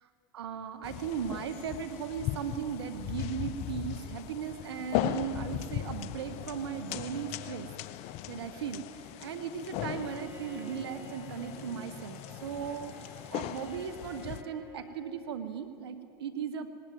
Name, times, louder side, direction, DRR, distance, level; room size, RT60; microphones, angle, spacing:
voice 1, 0.3-7.7 8.3-8.8 9.2-12.9 13.3-16.7, right 8 dB, 85° right, 11 dB, 1.1 m, -37 dB
sound 1, 0.8-14.4, left 12 dB, 55° left, 0.8 m, -38 dB
Bowed string instrument, 9.6-15.1, equal, 15° right, 3.7 m, -51 dB
19.5 x 18.5 x 9.1 m, 2.7 s
hypercardioid pair, 95°, 13 cm